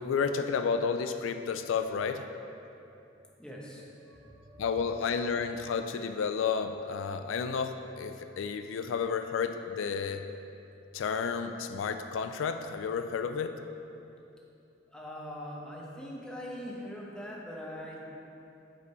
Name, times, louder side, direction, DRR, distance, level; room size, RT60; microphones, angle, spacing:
voice 1, 0.0-2.2 4.6-10.2 10.9-13.6, left 6 dB, 85° left, 8 dB, 0.4 m, -31 dB
voice 2, 3.4-4.8 14.9-18.1, equal, 5° left, -4 dB, 1.0 m, -42 dB
8.3 x 4.9 x 4.7 m, 2.8 s
head